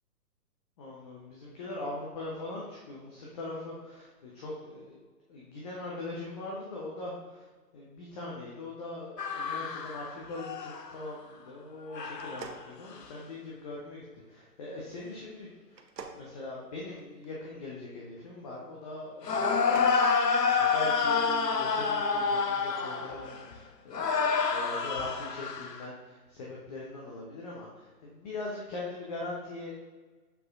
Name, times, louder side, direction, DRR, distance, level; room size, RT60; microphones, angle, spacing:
voice 1, 0.8-5.0 5.3-7.5 7.7-19.6 20.5-29.7, left 2 dB, 25° left, -4 dB, 0.8 m, -41 dB
sound 1, 9.2-11.1 11.9-12.6 13.0-13.1 19.2-23.6 23.9-25.8, left 5 dB, 85° left, 0.8 m, -28 dB
sound 2, 12.1-13.5 15.7-17.3 19.4-20.0, right 5 dB, 85° right, 0.9 m, -46 dB
6.7 x 6.3 x 2.5 m, 1.3 s
figure-of-eight pair, 130°, 48 cm